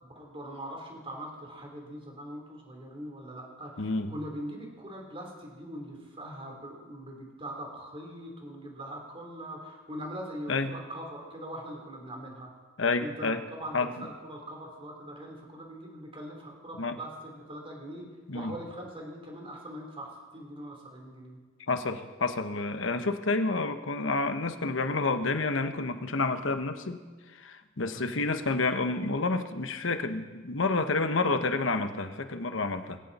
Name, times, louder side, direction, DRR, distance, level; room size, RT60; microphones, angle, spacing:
voice 1, 0.0-12.5 13.0-18.1 18.3-21.4 27.9-28.3, equal, 30° right, 0 dB, 3.7 m, -42 dB
voice 2, 3.8-4.1 10.5-10.7 12.8-13.4 13.7-14.1 16.8-17.0 18.3-18.5 21.7-27.0 27.3-33.0, left 3 dB, 85° left, 8 dB, 1.1 m, -29 dB
20.0 x 17.0 x 4.3 m, 1.4 s
head